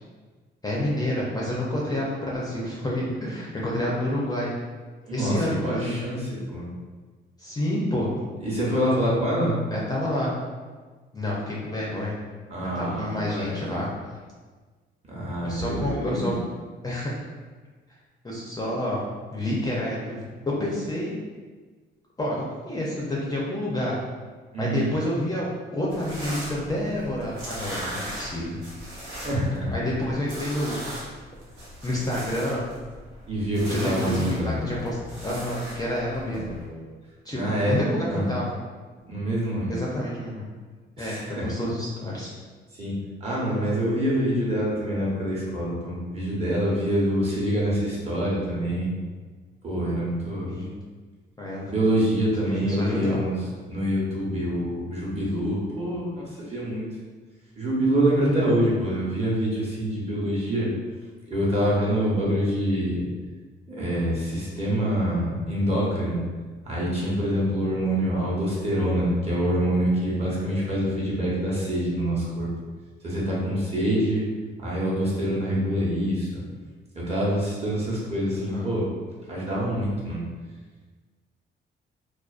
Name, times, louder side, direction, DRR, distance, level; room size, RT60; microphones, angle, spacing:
voice 1, 0.6-4.5 5.1-6.0 7.4-8.1 9.7-10.3 11.1-12.1 12.7-13.9 15.4-16.3 16.8-17.1 18.2-19.0 19.3-21.1 22.2-24.0 24.6-25.5 25.7-28.6 29.7-30.9 31.8-32.6 33.7-36.4 37.2-38.5 39.7-40.4 41.0-42.3 50.5-50.7 51.4-51.7 52.6-53.2 78.3-78.7, left 1 dB, 20° left, -5 dB, 0.5 m, -28 dB
voice 2, 5.0-6.7 8.4-9.6 12.5-13.8 15.0-16.4 24.5-24.9 29.1-29.7 33.3-34.6 36.3-36.8 37.3-37.8 38.1-38.3 39.0-39.7 41.0-41.5 42.7-42.9 43.2-48.9 49.6-50.6 51.7-53.4 53.6-56.9 57.6-60.7 61.3-63.1 63.7-66.2 66.6-72.5 73.0-74.2 74.6-76.4 76.9-78.9 79.3-80.2, equal, 30° right, -6 dB, 0.9 m, -26 dB
sound 1, 25.9-36.6, equal, 85° right, 0.9 m, -39 dB
2.4 x 2.2 x 2.4 m, 1.4 s
cardioid pair, 90°, 20 cm